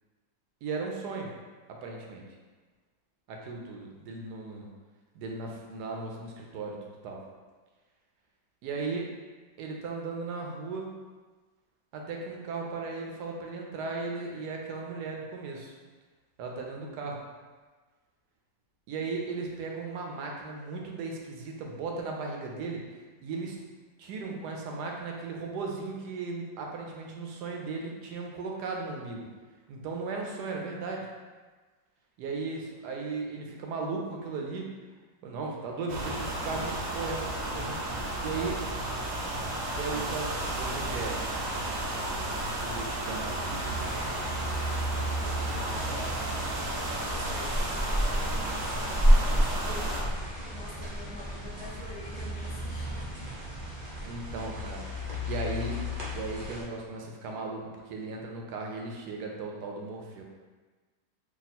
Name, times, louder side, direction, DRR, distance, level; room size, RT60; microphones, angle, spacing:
voice 1, 0.6-1.3 1.8-2.2 3.3-4.7 5.1-7.2 8.6-9.1 9.6-10.9 11.9-15.7 16.4-17.2 18.9-22.8 23.2-23.6 24.0-29.3 29.7-31.1 32.2-34.7 35.2-38.6 39.8-41.2 42.3-43.8 45.2-46.1 54.0-55.8 56.1-60.2, right 3 dB, 70° right, 0 dB, 1.1 m, -36 dB
sound 1, 35.9-50.0, right 1 dB, 85° right, 1.5 m, -33 dB
sound 2, 43.5-56.6, equal, 40° right, 0.6 m, -31 dB
voice 2, 45.5-46.4 47.0-50.0 50.5-53.1, left 2 dB, 50° left, -5 dB, 0.7 m, -47 dB
3.5 x 2.4 x 4.1 m, 1.4 s
omnidirectional pair, 2.0 m